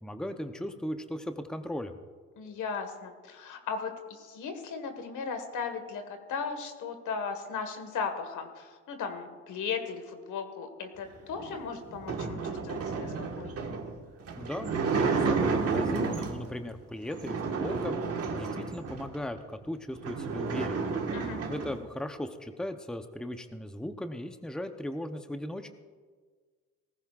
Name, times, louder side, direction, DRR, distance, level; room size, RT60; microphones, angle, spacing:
voice 1, 0.0-1.9 14.4-18.0 18.3-20.9 21.5-25.7, left 1 dB, ahead, 7 dB, 0.8 m, -37 dB
voice 2, 2.4-13.7 21.1-21.4, left 5 dB, 80° left, 6 dB, 1.7 m, -37 dB
sound 1, 11.4-16.5 17.1-19.2 19.6-19.7 19.9-21.8, right 4 dB, 50° right, 1.6 m, -31 dB
18.0 x 15.0 x 2.5 m, 1.5 s
cardioid pair, 90°, 30 cm